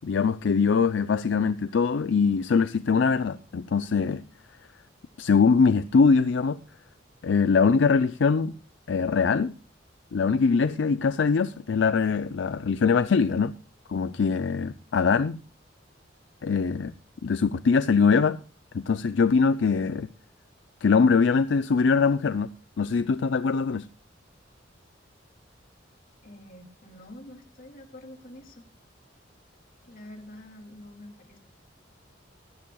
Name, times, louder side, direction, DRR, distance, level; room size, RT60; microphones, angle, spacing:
voice 1, 0.0-4.2 5.2-6.6 7.2-8.6 8.9-9.5 10.1-13.5 13.9-15.4 16.4-16.9 17.2-18.4 18.7-20.1 20.8-23.9, left 5 dB, 70° left, 0.5 m, -22 dB
voice 2, 26.2-28.7 29.8-31.4, left 1 dB, 50° left, 2.8 m, -46 dB
18.5 x 12.5 x 2.3 m
head